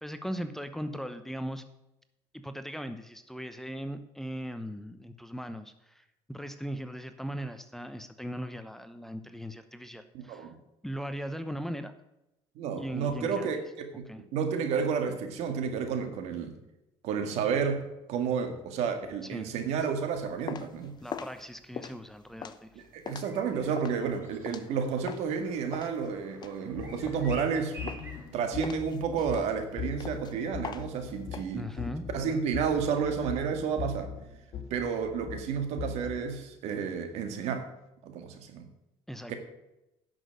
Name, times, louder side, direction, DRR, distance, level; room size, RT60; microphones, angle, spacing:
voice 1, 0.0-1.6 2.3-10.5 10.8-11.9 12.8-13.5 14.1-14.2 19.3-19.5 21.0-22.8 31.5-32.0 39.1-39.3, equal, 5° left, 9 dB, 0.8 m, -39 dB
voice 2, 10.1-10.6 12.6-16.5 17.0-20.9 22.8-27.9 28.3-31.7 32.1-34.1 34.7-37.7 38.0-38.7 39.3-39.4, right 6 dB, 75° right, 6 dB, 1.9 m, -31 dB
sound 1, 20.1-25.4 25.7-27.5 27.9-28.3 28.6-31.4, left 7 dB, 40° left, 0.8 m, -42 dB
sound 2, 23.2-28.2, right 1 dB, 20° right, 4.0 m, -50 dB
sound 3, 26.7-36.2, left 7 dB, 55° left, 2.4 m, -41 dB
10.5 x 6.3 x 7.7 m, 0.91 s
cardioid pair, 100°, 11 cm